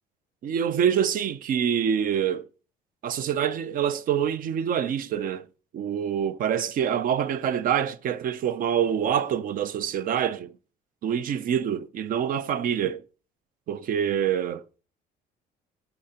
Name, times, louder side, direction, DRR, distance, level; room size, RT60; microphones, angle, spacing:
voice 1, 0.4-2.5 3.0-5.5 5.7-10.5 11.0-13.0 13.7-14.8, right 8 dB, 55° right, 0.5 m, -26 dB
8.3 x 5.7 x 2.9 m
cardioid pair, 110°, 17 cm